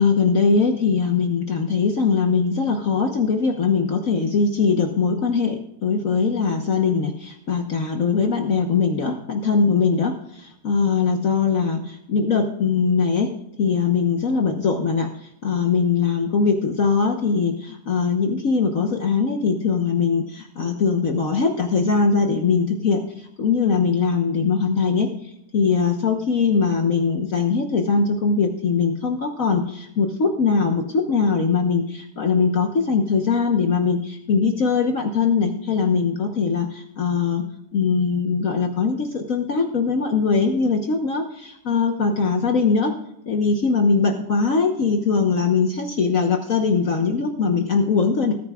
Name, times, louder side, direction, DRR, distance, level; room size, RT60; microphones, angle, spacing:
voice 1, 0.0-13.3 13.6-15.1 15.4-23.0 23.4-25.1 25.5-37.4 37.7-42.9 43.3-48.3, left 5 dB, 55° left, 4 dB, 1.3 m, -21 dB
19.5 x 9.3 x 2.4 m, 0.78 s
omnidirectional pair, 2.0 m